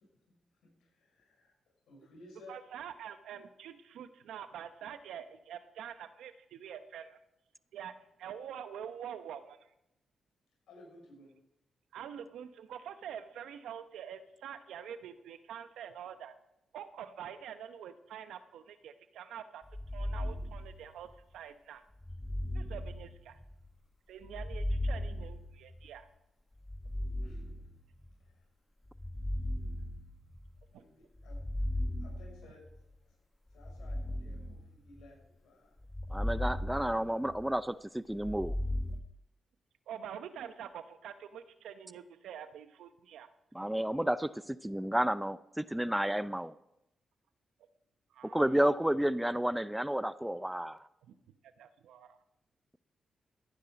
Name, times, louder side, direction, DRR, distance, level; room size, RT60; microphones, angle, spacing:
voice 1, 0.6-1.5 1.9-2.6 10.7-11.4 27.2-27.4 28.2-28.4 30.7-31.4 32.0-32.6 33.0-33.1 33.5-35.8, left 2 dB, 80° left, -1 dB, 6.2 m, -57 dB
voice 2, 2.5-7.2 7.7-9.7 11.9-16.3 16.7-19.6 19.9-21.8 22.5-23.4 24.1-26.1 30.7-30.8 39.9-43.3 48.1-48.5 51.0-51.2 51.6-52.2, right 9 dB, 80° right, 11 dB, 0.9 m, -46 dB
sound 1, 19.7-21.2 22.0-23.7 24.2-26.0 26.6-28.2 28.9-30.7 31.2-32.8 33.6-35.2 35.8-37.6 38.1-39.0, left 1 dB, 15° left, 1.0 m, -37 dB
voice 3, 36.1-38.5 43.5-44.3 44.6-46.5 48.3-50.8, right 1 dB, 10° right, 16 dB, 0.5 m, -31 dB
14.5 x 9.7 x 5.2 m, 0.85 s
supercardioid pair, 45°, 0 cm